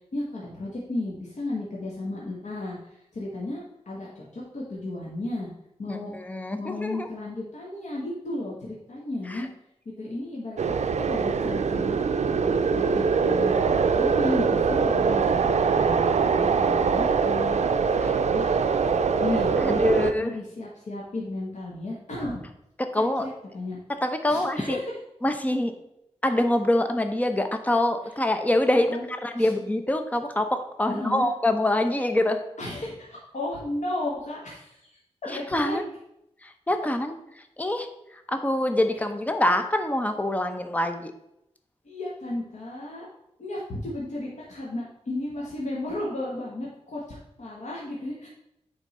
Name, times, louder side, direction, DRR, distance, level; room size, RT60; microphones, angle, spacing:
voice 1, 0.1-2.8 3.1-5.5 5.8-6.1 6.6-9.5 9.8-10.6 11.0-17.6 18.1-18.8 19.2-19.8 20.2-22.4 23.2-23.8 24.3-24.9 28.9-29.0 29.4-29.5 30.9-31.3 32.6-34.9 35.2-35.8 41.8-43.1 43.4-48.3, left 2 dB, 85° left, -5 dB, 1.4 m, -34 dB
voice 2, 5.9-7.1 9.3-9.5 18.0-18.2 19.6-20.4 22.9-23.3 24.0-24.8 25.2-25.7 26.2-32.4 35.3-35.8 36.4-37.2 37.6-37.9 38.3-41.1, left 1 dB, 15° left, 7 dB, 0.6 m, -25 dB
sound 1, 10.6-20.1, right 5 dB, 75° right, 0.4 m, -23 dB
8.9 x 3.7 x 4.2 m, 0.81 s
wide cardioid pair, 105°, 12 cm